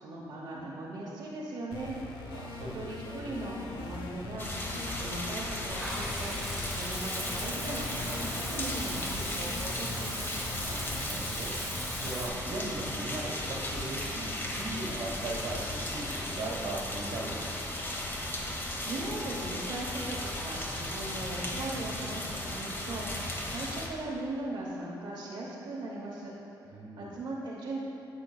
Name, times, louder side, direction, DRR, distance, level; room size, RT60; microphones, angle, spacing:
voice 1, 0.0-2.4 2.7-10.1 18.3-26.3 26.7-27.8, right 2 dB, 65° right, -5 dB, 1.0 m, -39 dB
sound 1, 1.7-11.1, left 3 dB, 85° left, 0.8 m, -42 dB
voice 2, 2.3-3.3 10.6-11.5 12.0-17.5 26.7-27.2, right 2 dB, 85° right, -3 dB, 1.4 m, -39 dB
sound 2, 4.4-23.9, left 1 dB, 25° left, 1.1 m, -36 dB
Water / Bathtub (filling or washing), 5.7-12.3, equal, ahead, 1.0 m, -41 dB
9.7 x 7.0 x 2.4 m, 2.9 s
cardioid pair, 85°, 8 cm